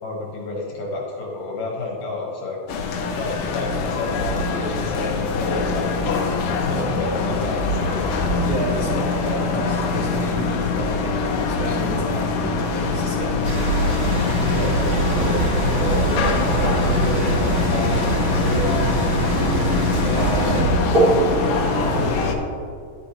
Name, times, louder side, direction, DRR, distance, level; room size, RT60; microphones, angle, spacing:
voice 1, 0.0-2.6 3.2-5.9 6.4-8.0 14.4-18.7, left 3 dB, 65° left, -2 dB, 2.4 m, -29 dB
sound 1, 2.7-22.4, left 4 dB, 80° left, 2.2 m, -23 dB
voice 2, 8.4-13.5 20.1-20.8 21.5-22.1, right 1 dB, 65° right, -9 dB, 1.2 m, -30 dB
sound 2, 13.4-22.1, right 3 dB, 40° right, 2.2 m, -23 dB
12.5 x 6.4 x 2.9 m, 2.3 s
omnidirectional pair, 4.9 m